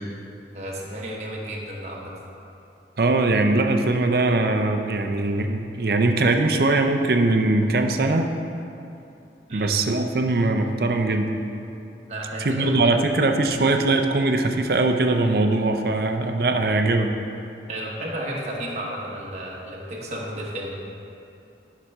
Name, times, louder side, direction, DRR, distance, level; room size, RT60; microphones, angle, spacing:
voice 1, 0.5-2.1 9.5-9.7 12.1-12.7 17.7-20.8, right 1 dB, 40° right, -4 dB, 1.1 m, -32 dB
voice 2, 3.0-8.3 9.5-11.3 12.4-17.1, right 2 dB, 60° right, 5 dB, 0.5 m, -21 dB
11.5 x 5.9 x 3.5 m, 2.7 s
head